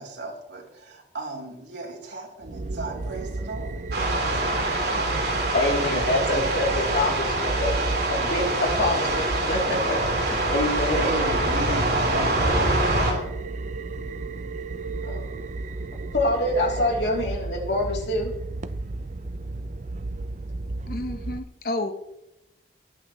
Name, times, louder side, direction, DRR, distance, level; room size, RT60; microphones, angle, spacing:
voice 1, 0.0-3.7 4.1-4.7 10.9-13.0, right 2 dB, 85° right, -1 dB, 3.3 m, -35 dB
sound 1, 2.4-21.4, right 2 dB, 40° right, 0.5 m, -33 dB
sound 2, 3.9-13.1, right 1 dB, 60° right, 4.3 m, -25 dB
voice 2, 5.5-7.8 8.1-10.2 10.5-11.1 15.0-15.3 16.1-18.3, left 1 dB, 75° left, -1 dB, 3.3 m, -25 dB
voice 3, 20.9-21.9, left 2 dB, 55° left, 7 dB, 1.1 m, -30 dB
18.0 x 11.0 x 3.2 m, 0.89 s
head